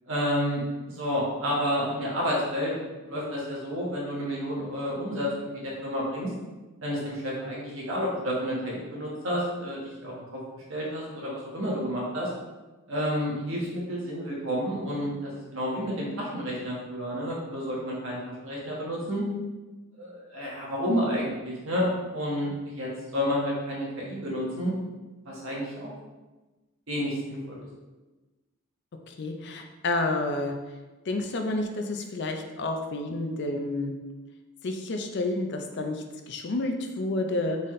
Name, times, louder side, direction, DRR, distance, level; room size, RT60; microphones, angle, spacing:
voice 1, 0.1-0.6 0.9-2.7 3.0-6.3 6.8-10.4 10.7-12.3 12.9-19.2 20.0-24.7 25.2-25.9 26.9-27.6, equal, 65° right, -4 dB, 1.4 m, -30 dB
voice 2, 29.1-30.6 31.1-33.9 34.6-37.6, left 2 dB, 55° left, 4 dB, 0.5 m, -30 dB
4.0 x 3.9 x 3.2 m, 1.2 s
head